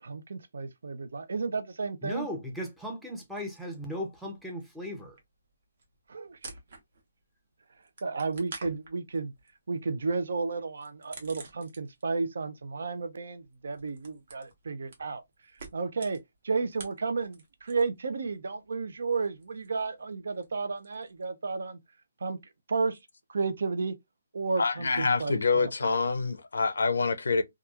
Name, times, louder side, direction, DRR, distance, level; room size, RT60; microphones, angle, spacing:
voice 1, 0.0-2.3 6.1-6.5 8.0-9.3 9.7-15.2 15.7-21.8 22.2-22.4 22.7-23.0 23.3-24.0 24.3-26.0, right 4 dB, 65° right, 0.5 m, -32 dB
voice 2, 2.0-5.2, equal, ahead, 0.5 m, -37 dB
sound 1, 3.4-4.2 4.5-7.2 7.5-12.2 12.5-18.0 18.3-21.2, right 3 dB, 45° right, 0.9 m, -49 dB
voice 3, 24.6-27.4, left 4 dB, 85° left, 0.5 m, -26 dB
2.9 x 2.3 x 2.3 m
hypercardioid pair, 170°, 0 cm